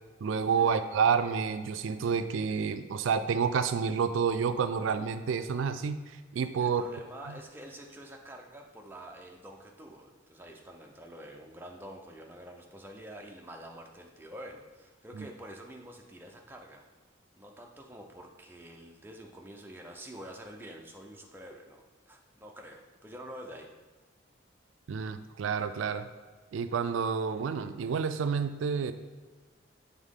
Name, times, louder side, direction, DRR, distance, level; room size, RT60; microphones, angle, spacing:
voice 1, 0.2-6.8 7.3-7.4 15.2-15.3 24.9-26.1 26.5-28.9, right 6 dB, 90° right, 11 dB, 0.3 m, -29 dB
voice 2, 6.6-16.9 17.4-23.7, right 1 dB, 10° right, 1 dB, 0.5 m, -47 dB
7.2 x 3.6 x 3.7 m, 1.4 s
head